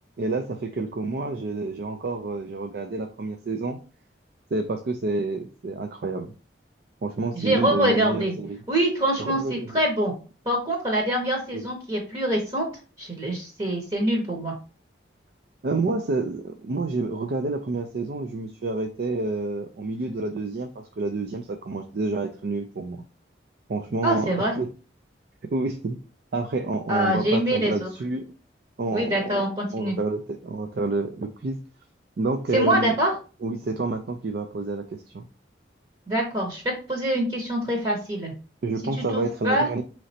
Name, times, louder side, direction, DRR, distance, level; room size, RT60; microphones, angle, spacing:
voice 1, 0.2-3.8 4.5-6.3 7.0-8.6 9.2-9.8 11.5-11.7 15.6-23.0 23.7-24.7 25.5-26.0 26.3-28.3 28.8-29.5 29.7-31.6 32.2-32.9 33.4-35.2 38.6-39.8, right 3 dB, 55° right, 5 dB, 0.4 m, -28 dB
voice 2, 7.3-8.3 8.7-10.1 10.5-12.6 13.0-14.5 24.0-24.5 26.9-27.9 28.9-29.9 32.5-33.1 36.1-38.3 39.0-39.7, right 1 dB, 30° right, 0 dB, 0.9 m, -25 dB
4.9 x 3.1 x 2.7 m, 0.36 s
head